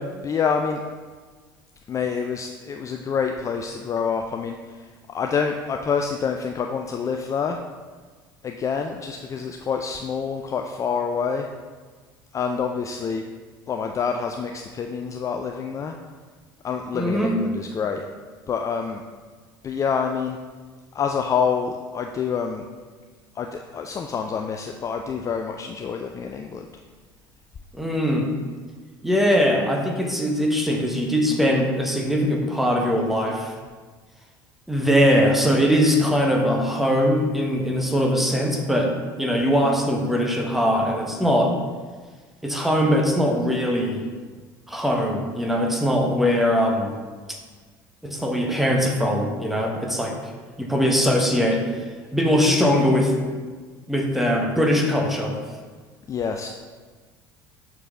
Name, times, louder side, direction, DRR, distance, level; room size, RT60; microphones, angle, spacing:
voice 1, 0.2-0.8 1.9-7.6 8.4-11.5 12.3-13.2 13.7-15.9 16.6-18.0 18.5-19.0 19.6-20.4 20.9-22.6 23.4-26.6 56.1-56.5, left 6 dB, 25° left, 4 dB, 0.4 m, -27 dB
voice 2, 16.9-17.4 27.7-28.3 29.0-33.5 34.7-41.5 42.4-44.0 44.7-46.9 48.0-50.1 50.6-51.6 52.1-53.1 53.9-55.4, equal, ahead, 1 dB, 1.1 m, -21 dB
6.9 x 4.6 x 3.7 m, 1.4 s
figure-of-eight pair, 60°, 11 cm